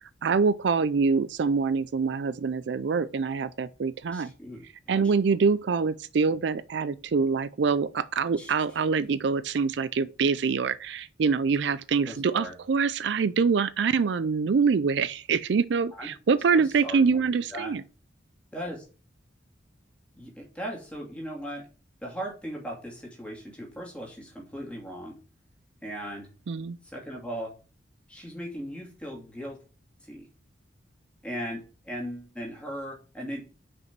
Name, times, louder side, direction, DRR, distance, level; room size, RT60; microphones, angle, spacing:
voice 1, 0.2-4.3 4.9-17.8 26.5-26.8, right 5 dB, 65° right, 0.4 m, -25 dB
voice 2, 4.1-5.1 8.4-8.5 12.0-12.5 15.9-16.1 16.6-17.2 17.5-17.7 18.5-18.8 20.2-21.7 22.0-25.2 25.8-26.3 26.8-27.6 28.1-29.6 30.0-30.3 31.2-33.5, equal, 5° left, 2.7 m, -38 dB
6.0 x 5.2 x 5.9 m
head